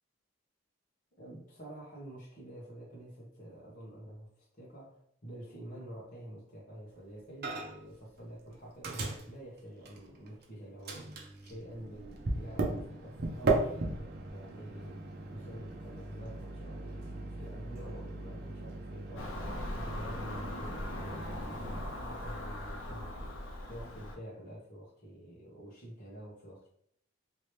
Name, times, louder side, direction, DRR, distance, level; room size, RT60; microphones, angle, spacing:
voice 1, 1.1-26.7, right 1 dB, 40° left, -5 dB, 1.2 m, -48 dB
Microwave oven, 7.4-7.9 8.2-10.4 10.8-21.9, right 2 dB, 50° right, 0.6 m, -37 dB
Car passing by / Engine, 19.2-24.2, left 1 dB, 80° left, 0.6 m, -40 dB
2.9 x 2.9 x 3.3 m, 0.67 s
head